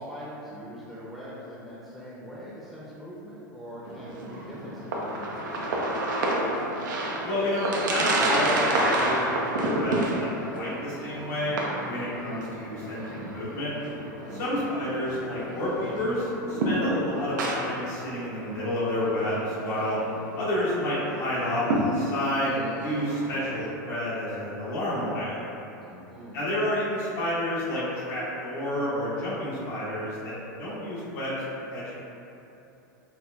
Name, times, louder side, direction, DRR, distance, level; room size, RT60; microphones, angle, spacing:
voice 1, 0.0-6.0 14.2-14.7 25.8-26.4, equal, ahead, -9 dB, 0.7 m, -42 dB
sound 1, 3.8-23.7, right 1 dB, 80° right, 0.5 m, -30 dB
voice 2, 7.2-13.7 14.3-20.0 20.3-25.4 26.3-31.4 31.7-31.8, left 1 dB, 65° left, -9 dB, 1.0 m, -30 dB
5.4 x 2.1 x 2.4 m, 2.9 s
hypercardioid pair, 105°, 10 cm